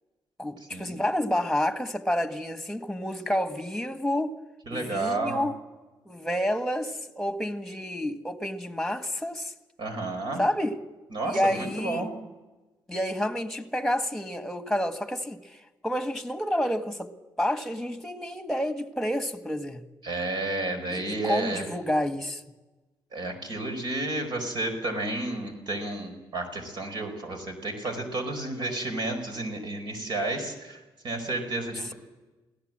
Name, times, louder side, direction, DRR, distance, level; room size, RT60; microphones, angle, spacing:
voice 1, 0.4-4.4 4.7-5.6 6.1-9.5 10.4-10.8 11.2-12.1 12.9-17.1 17.4-19.8 20.9-22.4, equal, 5° left, 1.7 m, -29 dB
voice 2, 4.7-5.4 9.8-10.4 11.1-12.1 20.0-21.6 23.1-30.8 31.0-31.9, right 2 dB, 60° right, 4.9 m, -31 dB
22.0 x 17.0 x 7.7 m
cardioid pair, 85°, 8 cm